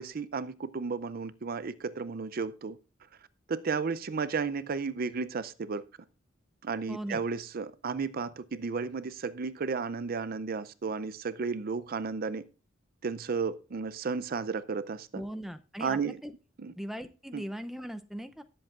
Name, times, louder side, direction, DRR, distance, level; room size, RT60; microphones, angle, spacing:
voice 1, 0.0-2.8 3.5-5.8 6.6-12.4 13.0-15.2 15.8-16.2 16.6-16.7 17.3-17.4, right 5 dB, 50° right, 0.5 m, -33 dB
voice 2, 6.9-7.2 15.1-16.3 16.8-18.4, equal, ahead, 0.5 m, -39 dB
18.0 x 7.8 x 2.4 m
head